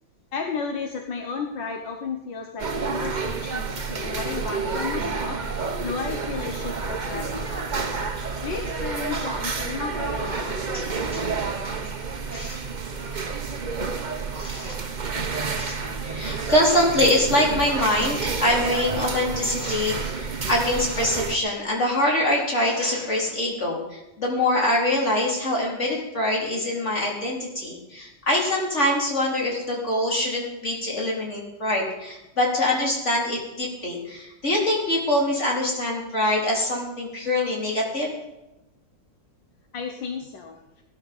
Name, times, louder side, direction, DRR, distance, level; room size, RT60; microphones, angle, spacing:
voice 1, 0.3-5.4 5.8-8.0 8.4-11.0 39.7-40.6, left 5 dB, 70° left, 4 dB, 1.9 m, -33 dB
sound 1, 2.6-21.4, right 4 dB, 30° right, 0.9 m, -29 dB
voice 2, 10.7-11.3 12.3-12.6 14.3-14.8 15.6-38.2, left 1 dB, 35° left, -2 dB, 4.6 m, -24 dB
18.5 x 12.5 x 5.5 m, 0.94 s
omnidirectional pair, 2.0 m